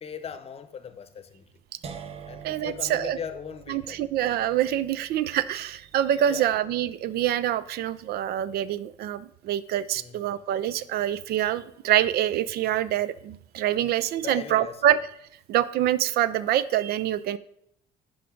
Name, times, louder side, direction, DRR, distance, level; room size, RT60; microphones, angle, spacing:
voice 1, 0.0-1.4 2.3-4.0 6.3-6.5 10.0-10.4 14.2-14.8, left 7 dB, 35° left, 10 dB, 0.7 m, -39 dB
sound 1, 1.8-7.8, right 6 dB, 35° right, 0.7 m, -46 dB
voice 2, 2.4-3.2 3.7-15.0 15.5-17.4, right 11 dB, 70° right, 16 dB, 0.4 m, -25 dB
10.0 x 5.1 x 3.7 m, 0.71 s
cardioid pair, 110°, 17 cm